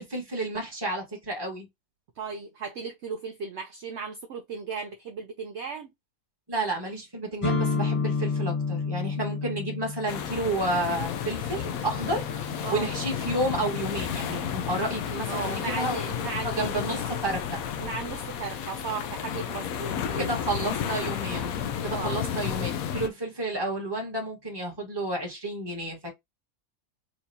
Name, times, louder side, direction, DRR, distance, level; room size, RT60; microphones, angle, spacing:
voice 1, 0.0-1.7 6.5-16.0 16.6-17.6 20.2-21.5 21.8-26.1, right 2 dB, 15° right, 1.6 m, -31 dB
voice 2, 2.2-5.9 12.6-12.9 15.3-16.8 17.8-20.3 21.9-22.2, right 5 dB, 65° right, 0.8 m, -36 dB
sound 1, 7.4-15.2, left 4 dB, 25° left, 1.0 m, -32 dB
sound 2, 10.1-23.1, left 8 dB, 80° left, 1.1 m, -32 dB
4.4 x 2.7 x 2.7 m
omnidirectional pair, 1.5 m